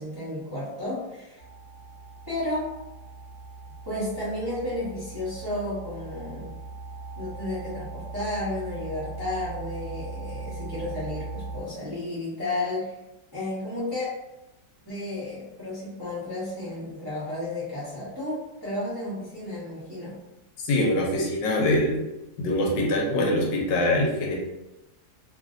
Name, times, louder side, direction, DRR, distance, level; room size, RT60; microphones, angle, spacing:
voice 1, 0.0-1.4 2.3-2.7 3.8-6.5 7.2-13.0 13.3-14.1 14.8-20.2, left 1 dB, 20° right, -10 dB, 0.7 m, -32 dB
sound 1, 1.4-11.6, right 3 dB, 55° right, 0.8 m, -39 dB
voice 2, 20.6-22.0 22.4-24.3, left 1 dB, 85° left, -1 dB, 1.3 m, -23 dB
3.1 x 2.5 x 2.4 m, 0.95 s
omnidirectional pair, 1.9 m